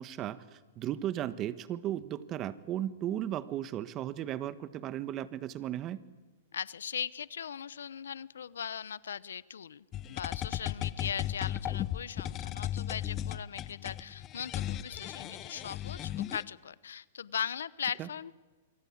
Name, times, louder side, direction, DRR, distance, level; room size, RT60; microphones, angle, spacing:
voice 1, 0.0-6.0 18.0-18.1, right 12 dB, 30° right, 15 dB, 1.3 m, -36 dB
voice 2, 6.5-18.3, left 8 dB, 85° left, 20 dB, 0.8 m, -39 dB
sound 1, 9.9-16.4, left 12 dB, 30° left, 0.9 m, -36 dB
26.5 x 24.5 x 8.6 m, 1.2 s
hypercardioid pair, 135°, 0 cm